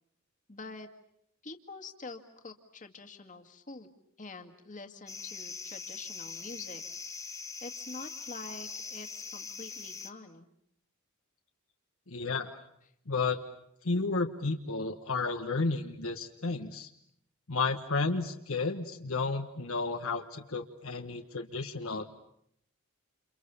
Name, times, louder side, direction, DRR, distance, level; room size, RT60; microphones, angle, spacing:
voice 1, 0.5-0.9 1.4-3.9 4.2-6.8 7.1-10.5, left 3 dB, 35° left, 5 dB, 2.1 m, -46 dB
sound 1, 5.1-10.1, left 5 dB, 15° left, 1.5 m, -42 dB
voice 2, 12.1-12.6 13.1-13.4 13.8-16.9 17.5-22.2, left 3 dB, 70° left, 5 dB, 1.4 m, -32 dB
29.0 x 28.5 x 7.0 m, 0.72 s
head